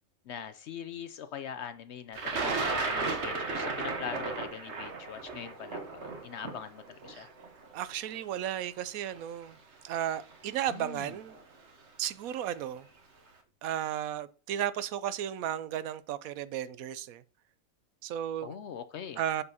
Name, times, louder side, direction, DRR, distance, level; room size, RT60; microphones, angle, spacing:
voice 1, 0.3-7.3 10.7-11.2 18.4-19.2, left 8 dB, 65° left, 0.7 m, -42 dB
Thunder, 2.2-8.2 9.1-9.2 10.3-10.6 10.9-11.4, right 3 dB, 55° right, 1.4 m, -34 dB
voice 2, 7.7-9.6 9.8-11.4 12.0-12.9 13.6-17.2 18.0-18.6 19.2-19.4, right 11 dB, 80° right, 1.0 m, -34 dB
6.9 x 6.6 x 2.8 m
omnidirectional pair, 1.5 m